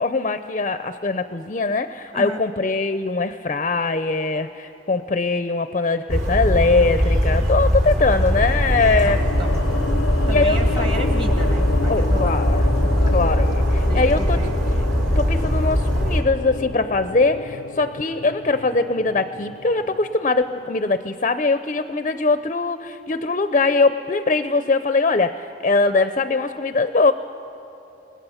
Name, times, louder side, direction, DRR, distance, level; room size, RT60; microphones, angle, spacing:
voice 1, 0.0-9.2 10.3-11.1 11.9-12.7 13.1-14.4 15.2-27.1, left 3 dB, 35° left, 10 dB, 0.5 m, -21 dB
Bird vocalization bird call bird song, 6.1-16.2, equal, 55° right, 2.9 m, -20 dB
sound 1, 8.3-20.5, left 4 dB, 90° left, 0.6 m, -31 dB
voice 2, 9.0-9.5 10.3-12.4 12.8-13.2 13.9-14.5, right 1 dB, 25° right, 4 dB, 1.4 m, -33 dB
29.0 x 19.5 x 5.7 m, 3.0 s
head